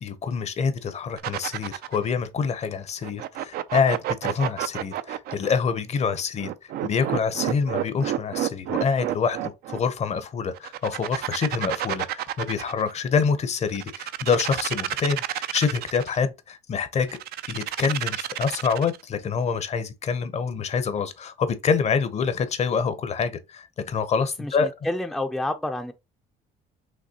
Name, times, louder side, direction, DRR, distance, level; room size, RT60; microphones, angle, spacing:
voice 1, 0.0-6.5 6.8-17.2 17.5-24.7, left 5 dB, 40° left, 0.6 m, -26 dB
sound 1, 1.2-2.1 3.0-5.5 6.4-9.8 10.5-12.9 13.7-16.2 17.1-19.0, right 13 dB, 65° right, 0.4 m, -30 dB
voice 2, 24.4-25.9, left 1 dB, ahead, 0.4 m, -29 dB
5.2 x 3.1 x 2.8 m
cardioid pair, 110°, 17 cm